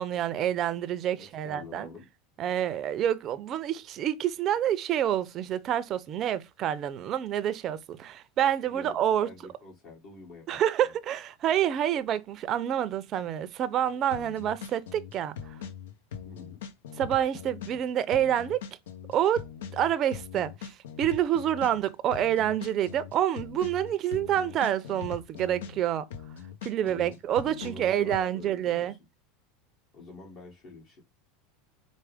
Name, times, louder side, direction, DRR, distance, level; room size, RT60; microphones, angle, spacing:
voice 1, 0.0-1.9 2.4-9.3 10.5-15.6 17.0-18.6 19.1-19.4 19.7-26.1 26.6-28.9, right 10 dB, 45° right, 0.5 m, -28 dB
voice 2, 1.2-2.1 8.6-9.0 9.2-10.6 16.2-16.6 26.8-27.2 27.6-29.0 29.9-31.0, left 3 dB, 55° left, 1.5 m, -47 dB
sound 1, 14.1-25.8 26.1-28.2, left 7 dB, 85° left, 0.6 m, -41 dB
4.5 x 2.1 x 3.4 m
hypercardioid pair, 105°, 0 cm